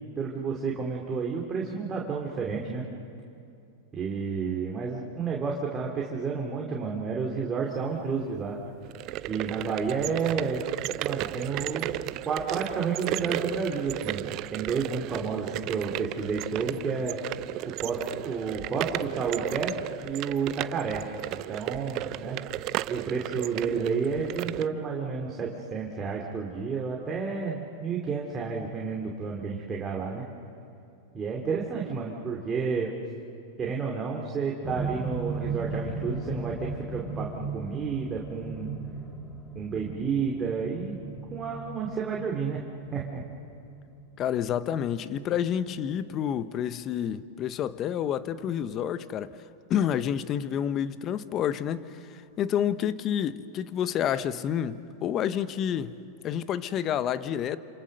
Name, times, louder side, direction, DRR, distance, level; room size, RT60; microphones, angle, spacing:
voice 1, 0.2-2.8 3.9-8.6 9.3-10.6 11.0-11.9 12.2-17.2 17.7-18.0 18.2-19.7 20.0-22.4 22.9-30.2 31.1-32.9 33.6-38.7 39.5-41.0 41.3-42.6 42.9-43.2, right 5 dB, 25° right, 2.9 m, -31 dB
sound 1, 8.8-24.7, right 16 dB, 45° right, 0.6 m, -34 dB
sound 2, 34.6-46.8 47.7-47.8, right 3 dB, 20° left, 2.3 m, -37 dB
voice 2, 44.2-49.3 49.7-56.0 56.2-57.6, left 9 dB, 35° left, 1.0 m, -29 dB
27.5 x 27.5 x 6.7 m
hypercardioid pair, 115°, 0 cm